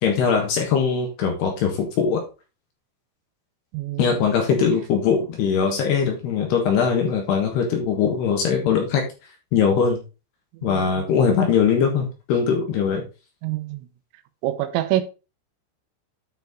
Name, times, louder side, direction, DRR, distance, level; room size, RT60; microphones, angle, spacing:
voice 1, 0.0-2.2 4.0-9.1 9.5-10.0 10.6-13.0, left 6 dB, 65° left, 2.9 m, -21 dB
voice 2, 3.7-4.2 10.6-10.8 13.4-13.9 14.4-15.0, right 14 dB, 85° right, 3.4 m, -25 dB
9.5 x 4.6 x 3.9 m
omnidirectional pair, 5.9 m